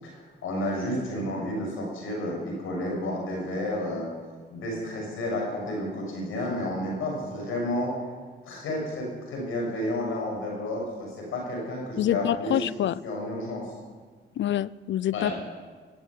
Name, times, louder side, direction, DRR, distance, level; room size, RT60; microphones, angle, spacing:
voice 1, 0.0-4.1 4.5-7.9 8.4-12.5 13.0-13.7 15.1-15.3, left 1 dB, 90° left, 6.5 m, -31 dB
voice 2, 12.0-13.0 14.4-15.4, left 11 dB, 65° left, 0.5 m, -26 dB
17.0 x 7.9 x 9.5 m
cardioid pair, 80°, 20 cm